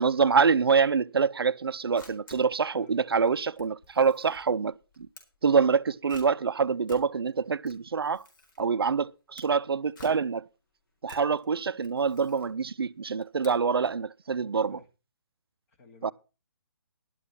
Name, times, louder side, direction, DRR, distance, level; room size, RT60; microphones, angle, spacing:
voice 1, 0.0-5.1 5.4-8.3 8.6-10.5 11.0-14.8 16.0-16.1, right 5 dB, 75° right, 0.5 m, -26 dB
Camera, 1.6-14.0, left 2 dB, 55° left, 4.1 m, -54 dB
voice 2, 2.7-3.0 14.5-14.9 15.7-16.1, left 3 dB, 35° left, 2.5 m, -54 dB
11.5 x 10.0 x 4.6 m
figure-of-eight pair, 140°, 13 cm